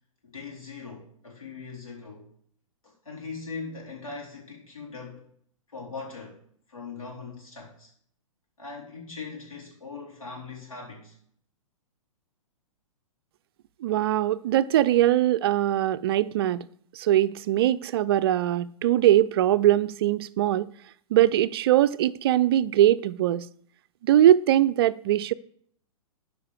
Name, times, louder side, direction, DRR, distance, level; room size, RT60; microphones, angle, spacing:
voice 1, 0.2-2.3 2.8-5.3 5.7-6.4 6.7-7.9 8.6-11.2, left 4 dB, 80° left, 3.8 m, -40 dB
voice 2, 13.8-16.6 17.0-20.7 21.1-23.5 24.0-25.3, right 12 dB, 45° right, 0.4 m, -21 dB
12.5 x 5.1 x 4.8 m
figure-of-eight pair, 110°, 17 cm